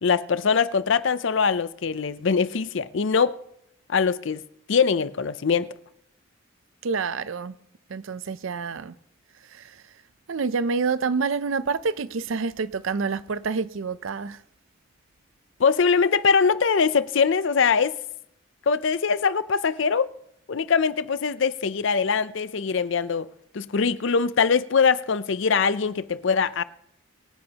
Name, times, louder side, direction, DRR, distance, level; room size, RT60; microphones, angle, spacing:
voice 1, 0.0-3.4 3.9-4.4 4.7-5.7 15.6-17.9 18.7-20.1 20.5-23.3 23.5-26.6, left 5 dB, 60° left, 0.5 m, -22 dB
voice 2, 6.8-7.5 7.9-8.9 9.5-9.7 10.3-14.4, right 5 dB, 70° right, 0.5 m, -27 dB
23.5 x 9.6 x 2.9 m
head